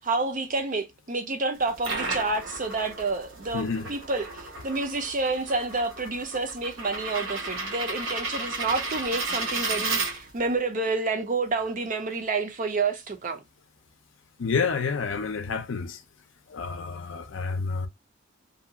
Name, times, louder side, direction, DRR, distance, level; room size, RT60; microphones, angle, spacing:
voice 1, 0.0-13.4, right 3 dB, 40° right, 0.5 m, -29 dB
sound 1, 1.6-10.5, right 3 dB, 70° right, 0.9 m, -33 dB
voice 2, 3.5-3.9 14.4-16.0 16.5-17.9, left 5 dB, 65° left, 0.5 m, -29 dB
2.7 x 2.3 x 2.7 m
head